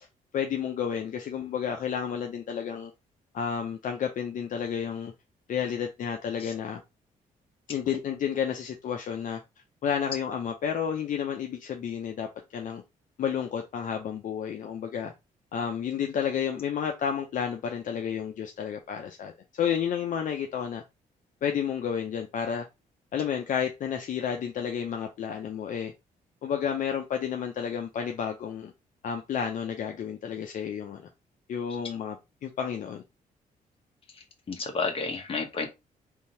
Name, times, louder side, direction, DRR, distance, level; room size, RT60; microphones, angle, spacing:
voice 1, 0.3-2.9 3.3-5.1 5.5-6.8 7.7-9.4 9.8-12.8 13.2-15.1 15.5-20.8 21.4-22.7 23.1-25.9 26.4-28.7 29.0-31.1 31.5-32.2 32.4-33.0, left 8 dB, 60° left, 0.7 m, -31 dB
voice 2, 34.1-35.7, left 4 dB, 40° left, 1.2 m, -32 dB
3.6 x 2.7 x 4.4 m
cardioid pair, 130°, 15 cm